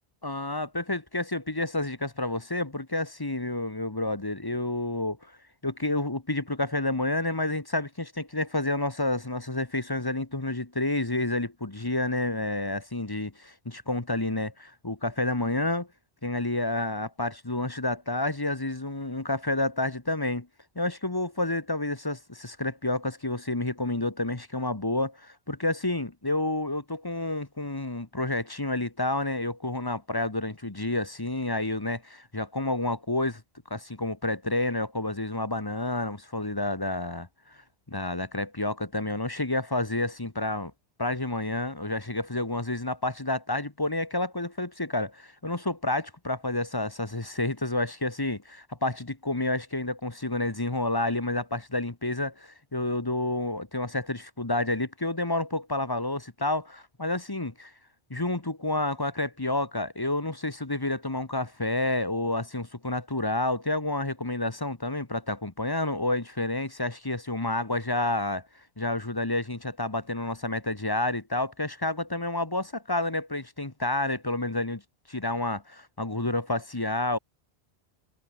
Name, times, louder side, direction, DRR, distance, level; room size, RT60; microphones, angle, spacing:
voice 1, 0.2-5.2 5.6-15.9 16.2-20.5 20.7-33.4 33.7-37.3 37.9-40.7 41.0-57.7 58.1-68.4 68.8-74.8 75.1-77.2, left 2 dB, 20° left, 1.5 m, -29 dB
omnidirectional pair, 1.1 m